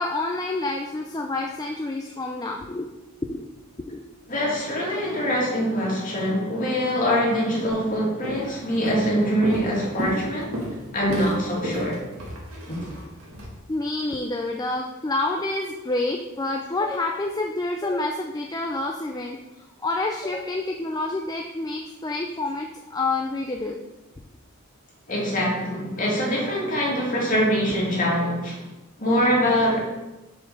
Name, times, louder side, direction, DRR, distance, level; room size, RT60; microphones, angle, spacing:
voice 1, 0.0-2.9 3.2-3.5 3.8-4.0 4.9-5.0 12.8-13.0 13.7-23.8, left 2 dB, 15° left, 2 dB, 0.4 m, -28 dB
voice 2, 4.3-10.5 10.9-12.0 12.7-12.8 25.1-28.7 29.0-29.8, equal, 35° left, -4 dB, 2.3 m, -24 dB
Walk footsteps, 7.7-7.9 8.2-8.6 8.9-13.5, equal, 75° right, 2.0 m, -32 dB
5.9 x 5.2 x 5.4 m, 1.0 s
head